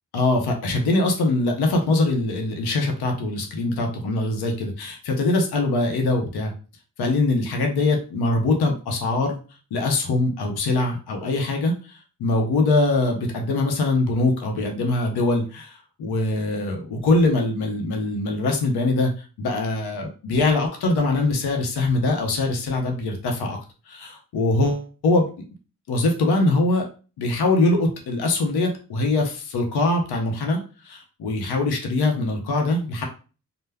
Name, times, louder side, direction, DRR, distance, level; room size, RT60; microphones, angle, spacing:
voice 1, 0.1-6.5 7.0-9.4 9.7-23.6 23.9-25.3 25.9-26.9 27.2-33.0, left 2 dB, 80° left, 2 dB, 0.7 m, -23 dB
2.1 x 2.0 x 3.3 m, 0.35 s
supercardioid pair, 40°, 39 cm